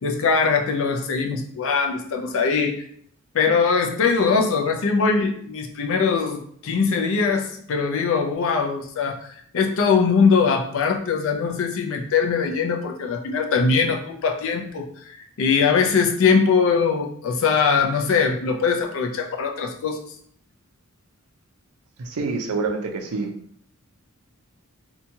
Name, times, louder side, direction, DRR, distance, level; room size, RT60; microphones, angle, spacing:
voice 1, 0.0-2.8 3.3-20.0, left 5 dB, 60° left, 4 dB, 0.4 m, -21 dB
voice 2, 22.0-23.3, right 4 dB, 80° right, 2 dB, 0.5 m, -27 dB
2.7 x 2.2 x 2.7 m, 0.63 s
head